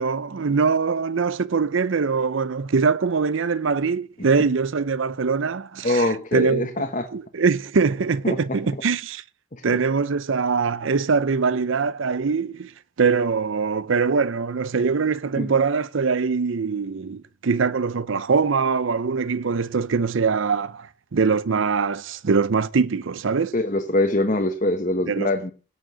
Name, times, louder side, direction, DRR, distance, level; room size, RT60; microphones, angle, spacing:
voice 1, 0.0-6.7 7.1-9.2 9.6-12.7 13.0-23.6 25.1-25.3, right 5 dB, 65° right, 0.6 m, -23 dB
voice 2, 5.8-7.1 8.2-8.6 9.5-9.6 15.4-15.5 23.5-25.5, left 1 dB, 35° left, 1.2 m, -23 dB
18.0 x 6.4 x 6.2 m
head